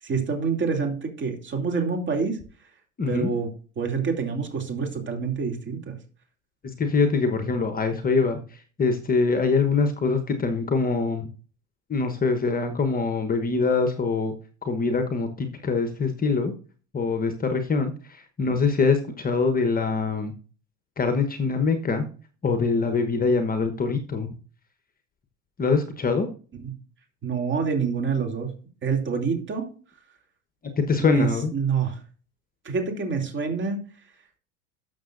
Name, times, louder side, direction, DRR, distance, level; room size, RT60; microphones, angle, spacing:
voice 1, 0.0-2.4 3.1-3.5 3.8-6.0 26.6-26.7 27.2-28.5 28.8-29.7 31.0-32.0 32.6-33.8, right 5 dB, 30° right, 3 dB, 2.8 m, -27 dB
voice 2, 3.0-3.3 6.6-11.3 11.9-14.3 14.6-16.5 16.9-20.3 21.0-22.1 22.4-24.3 25.6-26.3 30.8-31.5, left 4 dB, 20° left, 7 dB, 1.1 m, -24 dB
12.5 x 6.9 x 2.6 m, 0.38 s
hypercardioid pair, 100°, 39 cm